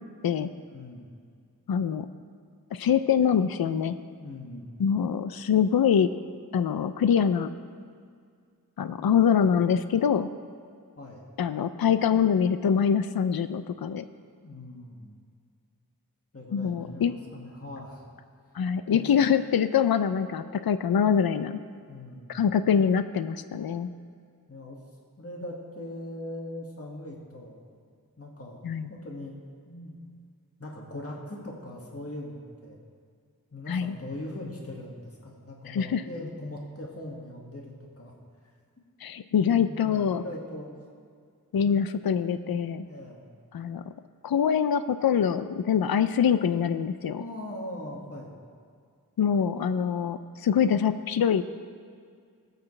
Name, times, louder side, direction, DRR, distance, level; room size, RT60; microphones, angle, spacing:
voice 1, 0.7-1.1 4.2-4.7 11.0-11.2 14.4-15.1 16.3-18.1 18.8-19.4 21.9-22.4 24.5-24.8 25.2-27.6 28.2-28.6 28.9-29.4 29.7-30.0 30.6-32.8 33.5-38.1 38.4-38.5 39.4-40.7 42.8-43.3 47.2-48.4, left 1 dB, 40° left, -2 dB, 1.9 m, -40 dB
voice 2, 1.7-2.1 2.7-4.0 4.8-6.1 6.5-7.5 8.8-10.3 11.4-14.1 16.5-17.1 18.5-21.6 22.3-23.9 28.6-28.9 33.7-34.0 35.7-36.0 39.0-40.2 41.5-42.9 43.5-43.8 44.2-47.2 49.2-51.4, left 7 dB, 75° left, 12 dB, 0.5 m, -24 dB
20.5 x 8.3 x 3.3 m, 2.2 s
wide cardioid pair, 55°, 36 cm